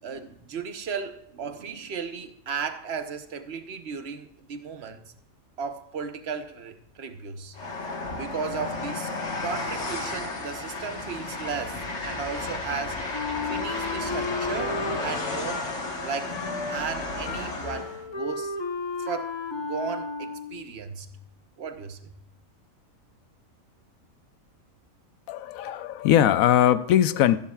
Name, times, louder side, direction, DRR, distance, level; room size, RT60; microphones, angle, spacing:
voice 1, 0.0-5.1 5.6-7.6 8.2-9.1 9.4-13.0 13.5-15.7 16.0-16.3 16.7-18.6 19.0-19.4 19.7-21.1 21.6-22.1, right 6 dB, 55° right, 1.1 m, -35 dB
Train, 7.5-18.0, left 2 dB, 55° left, 1.8 m, -33 dB
Wind instrument woodwind instrument, 13.1-20.7, left 3 dB, 25° left, 0.6 m, -34 dB
voice 2, 25.3-27.4, left 11 dB, 80° left, 1.0 m, -20 dB
14.0 x 11.5 x 2.4 m
omnidirectional pair, 1.5 m